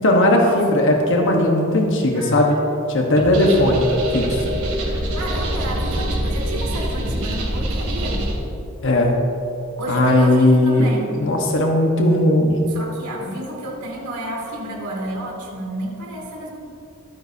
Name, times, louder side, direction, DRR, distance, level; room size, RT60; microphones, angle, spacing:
voice 1, 0.0-2.6 2.9-3.9 4.1-4.5 8.8-9.1 9.9-12.7, left 1 dB, 55° left, 1 dB, 1.3 m, -17 dB
voice 2, 2.1-3.2 5.1-8.3 9.8-11.1 12.7-16.6, right 1 dB, 85° right, -1 dB, 2.7 m, -31 dB
sound 1, 3.2-8.3, right 1 dB, 65° right, 3.1 m, -24 dB
23.0 x 9.5 x 2.8 m, 2.8 s
head